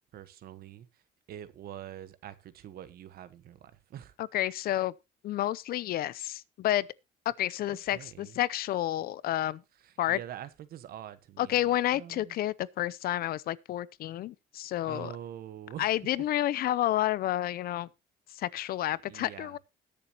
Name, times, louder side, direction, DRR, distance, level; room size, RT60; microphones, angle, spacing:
voice 1, 0.1-0.9 1.3-4.1 7.7-8.4 9.8-11.6 11.9-12.3 14.8-15.9 19.1-19.6, right 10 dB, 65° right, 1.3 m, -45 dB
voice 2, 4.2-4.9 5.2-6.9 7.3-9.6 10.0-10.2 11.4-15.1 15.8-17.9 18.3-19.6, left 13 dB, 65° left, 0.6 m, -30 dB
20.0 x 6.9 x 2.9 m
cardioid pair, 110°, 17 cm